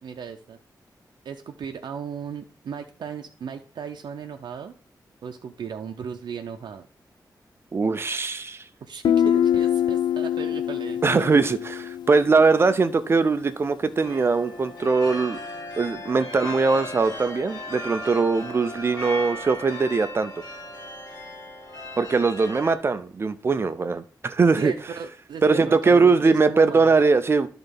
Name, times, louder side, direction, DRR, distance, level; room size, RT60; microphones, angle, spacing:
voice 1, 0.0-0.6 1.2-4.7 5.2-6.9 8.8-11.3 24.6-26.9, right 7 dB, 85° right, 4 dB, 0.6 m, -36 dB
voice 2, 7.7-8.7 11.0-15.4 15.8-20.4 22.0-24.7 25.4-27.5, right 4 dB, 35° right, 11 dB, 0.5 m, -21 dB
Guitar, 9.0-12.7, left 9 dB, 85° left, 0.3 m, -24 dB
sound 1, 14.0-22.7, left 1 dB, 60° left, 2.2 m, -37 dB
11.0 x 3.9 x 5.3 m, 0.42 s
wide cardioid pair, 175°, 7 cm